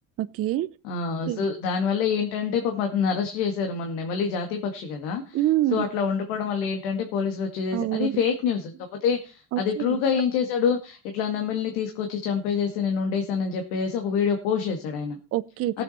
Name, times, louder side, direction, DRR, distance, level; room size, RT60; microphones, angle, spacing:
voice 1, 0.2-0.7 1.3-1.5 5.3-5.8 7.7-8.2 9.5-10.0 15.3-15.8, right 14 dB, 40° right, 13 dB, 0.6 m, -26 dB
voice 2, 0.8-5.4 5.7-8.7 9.0-15.2 15.7-15.8, left 6 dB, 80° left, 5 dB, 2.1 m, -26 dB
17.5 x 7.8 x 4.3 m, 0.33 s
cardioid pair, 130°, 35 cm